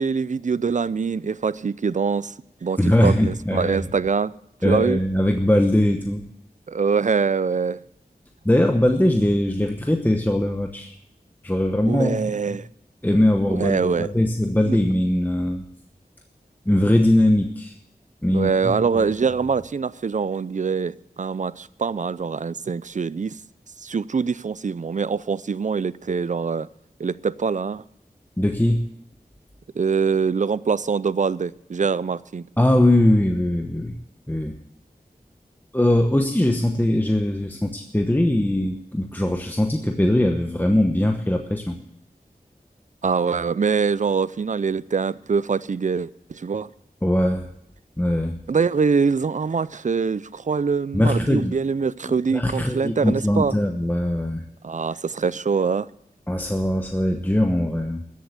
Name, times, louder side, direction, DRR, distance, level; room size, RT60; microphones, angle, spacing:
voice 1, 0.0-2.3 2.6-4.3 4.6-5.0 6.7-7.8 11.9-12.7 13.5-14.1 14.7-14.8 18.3-23.4 23.8-26.7 27.0-27.8 29.8-32.4 43.0-46.7 48.5-53.5 54.6-55.9, right 5 dB, 50° right, 0.4 m, -24 dB
voice 2, 2.8-3.8 4.6-6.2 8.4-10.9 11.4-12.3 13.0-15.6 16.7-17.7 18.2-19.0 28.4-28.8 32.6-33.9 34.3-34.5 35.7-41.8 47.0-47.5 48.0-48.3 50.9-51.6 52.1-54.4 56.3-58.0, left 1 dB, 10° left, 1.0 m, -21 dB
14.0 x 7.7 x 8.2 m
wide cardioid pair, 65°, 16 cm